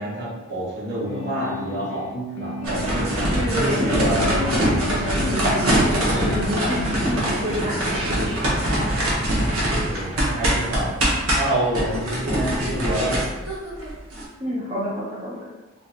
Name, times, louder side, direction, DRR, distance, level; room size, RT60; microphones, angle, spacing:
voice 1, 0.0-4.2 6.1-6.6 9.2-9.6 9.9-11.0 11.3-13.3, right 1 dB, 55° right, -6 dB, 1.1 m, -28 dB
sound 1, 1.1-7.6, left 2 dB, 60° left, 0.5 m, -32 dB
sound 2, 2.6-14.2, right 1 dB, 85° right, 0.9 m, -23 dB
voice 2, 3.3-8.5 14.4-15.5, equal, 25° right, -9 dB, 0.6 m, -29 dB
3.6 x 2.7 x 2.5 m, 1.1 s
head